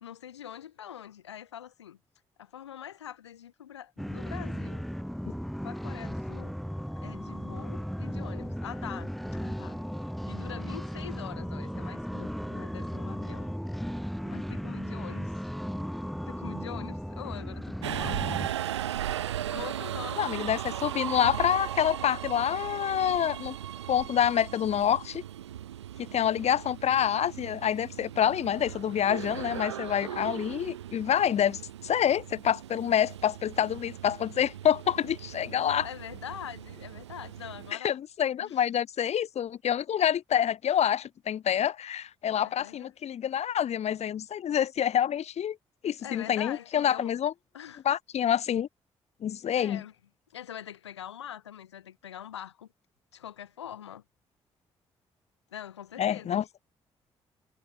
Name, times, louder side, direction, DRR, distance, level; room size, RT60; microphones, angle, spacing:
voice 1, 0.0-2.0 2.4-4.8 5.6-6.6 7.0-9.8 10.3-13.5 14.2-15.5 16.2-18.4 19.5-20.2 35.8-38.0 38.4-38.6 42.4-42.9 46.0-47.2 47.5-47.8 49.6-50.0 50.3-52.7 53.1-54.0 55.5-56.4, left 10 dB, 85° left, 2.2 m, -44 dB
sound 1, 4.0-18.5, equal, ahead, 1.1 m, -36 dB
Subway metro underground, 17.8-37.7, right 11 dB, 85° right, 1.4 m, -38 dB
voice 2, 20.2-23.6 23.9-25.2 26.0-35.9 37.8-45.6 45.8-47.3 47.8-48.7 49.2-49.8 56.0-56.4, left 9 dB, 50° left, 0.9 m, -27 dB
figure-of-eight pair, 40°, 14 cm